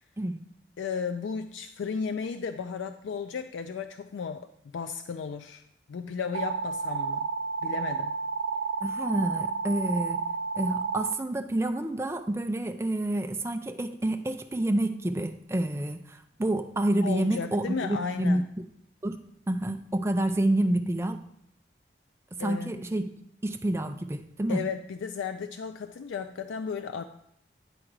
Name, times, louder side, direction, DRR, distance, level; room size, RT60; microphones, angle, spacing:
voice 1, 0.8-4.5 4.7-5.6 5.9-7.3 7.6-8.2 17.0-18.4 22.4-22.7 24.5-27.0, left 5 dB, 85° left, 8 dB, 0.3 m, -34 dB
sound 1, 6.3-11.1, right 5 dB, 90° right, 0.3 m, -31 dB
voice 2, 8.8-10.2 10.6-18.4 19.0-19.2 19.5-21.2 22.4-23.0 23.4-24.6, right 1 dB, 15° right, 7 dB, 0.4 m, -28 dB
9.8 x 3.7 x 4.6 m, 0.73 s
head